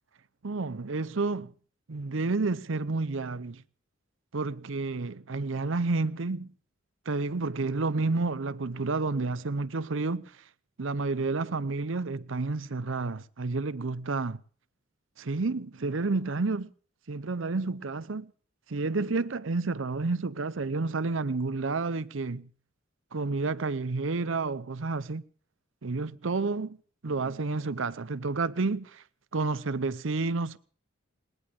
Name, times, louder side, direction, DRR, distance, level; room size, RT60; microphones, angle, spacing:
voice 1, 0.4-1.5 1.9-3.6 4.3-6.5 7.1-10.4 10.8-14.4 15.2-16.7 17.1-18.3 18.7-22.5 23.1-25.2 25.8-26.8 27.0-29.0 29.3-30.6, right 3 dB, 70° right, 0.7 m, -30 dB
20.0 x 19.5 x 3.7 m
head